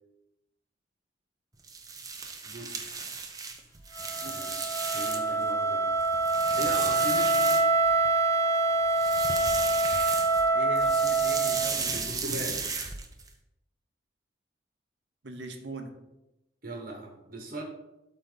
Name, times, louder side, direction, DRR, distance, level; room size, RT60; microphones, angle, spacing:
sound 1, 1.6-5.4 5.8-8.1 8.9-10.5 10.7-13.3, right 4 dB, 20° right, 0.8 m, -35 dB
voice 1, 2.4-3.0 4.2-4.5 4.9-5.9 6.6-7.4 11.9-12.6 16.6-17.6, right 1 dB, 55° right, 0 dB, 1.3 m, -39 dB
Wind instrument woodwind instrument, 3.9-12.0, right 3 dB, 15° left, 0.8 m, -26 dB
voice 2, 10.5-11.9 15.2-15.9, right 3 dB, 90° right, 5 dB, 1.0 m, -41 dB
12.0 x 4.0 x 4.0 m, 0.93 s
head